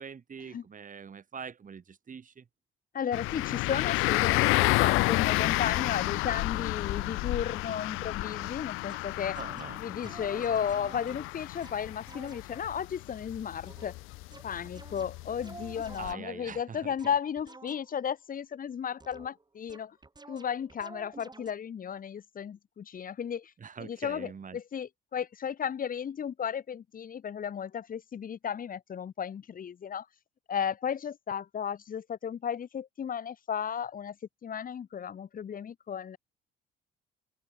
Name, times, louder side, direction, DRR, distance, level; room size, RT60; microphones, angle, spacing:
voice 1, 0.0-2.4 9.3-10.2 16.0-16.9 23.6-24.6, right 6 dB, 40° right, 3.0 m, -44 dB
voice 2, 2.9-9.4 9.8-14.0 14.4-20.0 20.3-23.5 23.8-30.1 30.5-34.2 34.4-36.2, left 8 dB, 40° left, 1.0 m, -34 dB
sound 1, 3.1-16.1, left 22 dB, 80° left, 0.6 m, -30 dB
sound 2, 8.2-8.5 8.9-12.6 13.7-18.1 19.0-19.4 19.7-21.5, right 3 dB, 20° right, 2.9 m, -51 dB
supercardioid pair, 70°, 21 cm